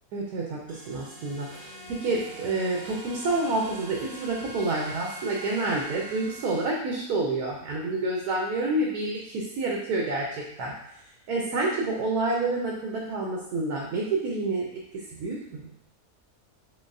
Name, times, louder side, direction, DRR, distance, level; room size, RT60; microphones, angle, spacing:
voice 1, 0.1-10.2 10.6-10.7 11.3-14.6 15.2-15.7, right 2 dB, 80° right, -2 dB, 1.2 m, -28 dB
sound 1, 0.7-6.6, right 1 dB, 30° right, 0.3 m, -42 dB
3.9 x 3.3 x 2.6 m, 0.76 s
omnidirectional pair, 1.6 m